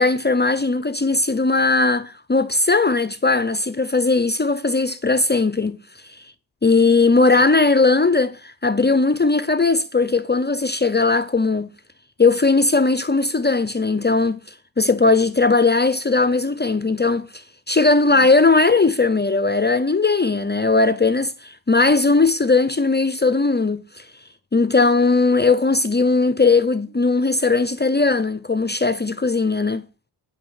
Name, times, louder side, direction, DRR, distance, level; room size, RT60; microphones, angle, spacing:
voice 1, 0.0-5.8 6.0-6.2 6.6-11.7 12.2-24.1 24.5-29.9, left 3 dB, 25° left, 0.7 m, -18 dB
9.3 x 6.3 x 6.5 m
cardioid pair, 70°, 45 cm